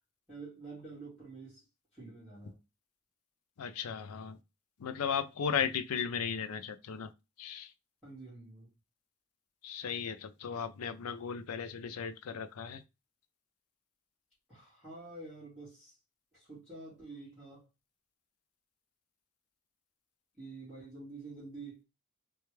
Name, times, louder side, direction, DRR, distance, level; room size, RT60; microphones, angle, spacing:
voice 1, 0.3-1.7 1.9-2.6 5.5-5.8 8.0-8.7 14.5-16.0 16.3-17.7 20.4-21.8, right 3 dB, ahead, 1.8 m, -48 dB
voice 2, 3.6-4.4 4.8-7.1 7.4-7.7 9.6-12.8, left 7 dB, 75° left, 0.4 m, -36 dB
3.2 x 2.3 x 3.1 m
head